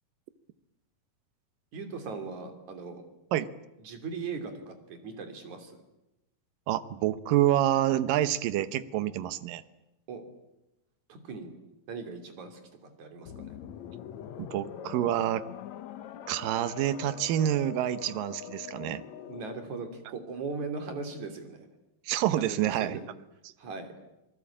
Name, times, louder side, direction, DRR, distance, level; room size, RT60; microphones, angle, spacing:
voice 1, 1.7-3.0 3.8-5.8 10.1-10.2 11.1-11.5 11.9-13.6 19.2-21.7 22.4-23.1 23.6-23.9, right 4 dB, 50° right, 6 dB, 4.2 m, -39 dB
voice 2, 6.7-9.6 14.4-15.4 16.3-19.0 22.1-23.0, right 12 dB, 70° right, 14 dB, 2.5 m, -27 dB
sound 1, 13.3-19.7, left 10 dB, 65° left, 1.8 m, -43 dB
27.5 x 19.5 x 8.7 m, 0.93 s
omnidirectional pair, 4.5 m